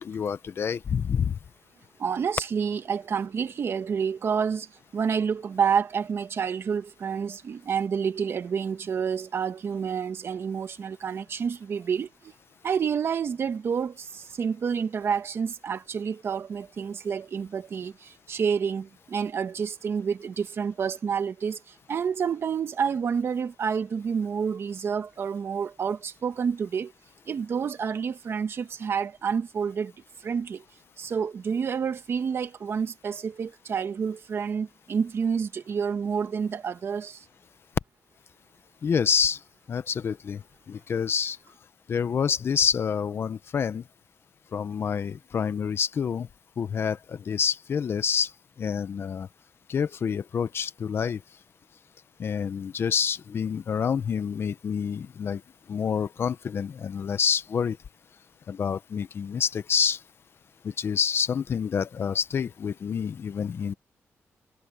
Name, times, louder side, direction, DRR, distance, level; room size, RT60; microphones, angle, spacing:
voice 1, 0.0-1.4 38.8-39.4 39.7-40.4 40.7-41.4 41.9-43.8 44.5-46.3 46.6-47.0 47.3-48.3 48.6-49.3 49.7-51.2 52.2-55.4 55.7-57.8 58.5-60.0 60.8-63.7, left 7 dB, 50° left, 0.8 m, -27 dB
voice 2, 2.0-12.3 12.6-21.6 21.9-26.9 27.3-29.9 30.2-30.6 31.0-37.2, right 6 dB, 55° right, 1.5 m, -29 dB
wide cardioid pair, 135°, 5 cm